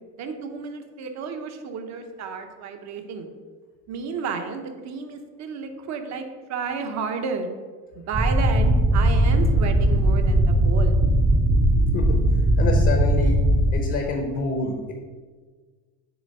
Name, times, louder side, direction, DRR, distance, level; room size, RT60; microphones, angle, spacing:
voice 1, 0.2-3.3 3.9-7.5 8.0-11.0, right 5 dB, 50° right, 5 dB, 0.9 m, -32 dB
sound 1, 8.1-13.7, right 1 dB, 10° right, 0.6 m, -19 dB
voice 2, 12.6-13.4 13.7-14.9, left 3 dB, 40° left, 3 dB, 0.9 m, -27 dB
7.1 x 3.3 x 5.3 m, 1.5 s
cardioid pair, 130°, 36 cm